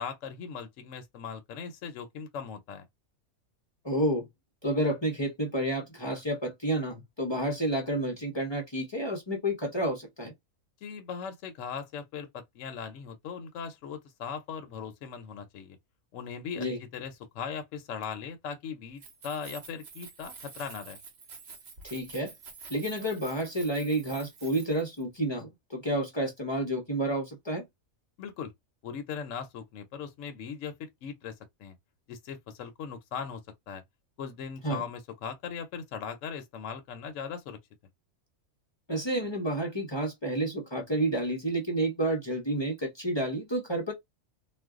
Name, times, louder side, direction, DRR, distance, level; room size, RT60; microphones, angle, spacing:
voice 1, 0.0-2.9 10.8-15.8 16.1-16.7 16.9-21.0 28.2-28.5 28.8-31.8 32.1-33.4 33.7-33.8 34.2-37.6, left 6 dB, 70° left, 0.9 m, -39 dB
voice 2, 3.8-4.3 4.6-10.3 16.6-16.8 21.8-22.3 22.7-27.6 34.6-34.8 38.9-43.9, right 1 dB, 30° left, 0.5 m, -30 dB
Keys jangling, 18.9-25.0, right 5 dB, 55° right, 0.9 m, -48 dB
2.5 x 2.2 x 3.5 m
omnidirectional pair, 1.5 m